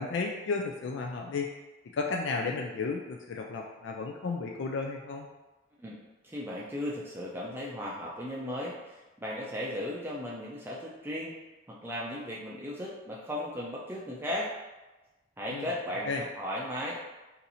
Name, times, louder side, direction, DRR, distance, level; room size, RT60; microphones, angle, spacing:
voice 1, 0.0-1.5 1.9-5.3 15.5-15.7 16.0-16.2, left 4 dB, 75° left, 1 dB, 0.3 m, -33 dB
voice 2, 6.2-11.4 11.7-14.5 15.4-17.0, left 1 dB, 10° right, -5 dB, 0.4 m, -36 dB
2.8 x 2.6 x 4.0 m, 1.1 s
head